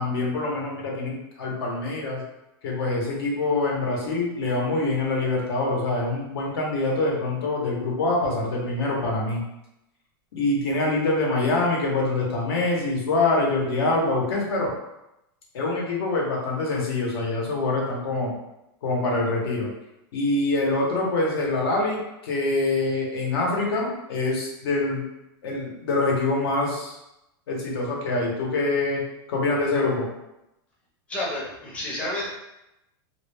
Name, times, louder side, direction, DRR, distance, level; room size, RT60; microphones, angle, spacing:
voice 1, 0.0-2.2 2.6-9.4 10.3-14.7 15.5-18.3 18.8-19.7 20.1-25.0 25.4-27.0 27.5-30.1, left 2 dB, 70° left, -2 dB, 0.9 m, -25 dB
voice 2, 31.1-32.3, left 1 dB, 10° left, -7 dB, 0.6 m, -30 dB
2.2 x 2.1 x 3.3 m, 0.89 s
supercardioid pair, 155°, 13 cm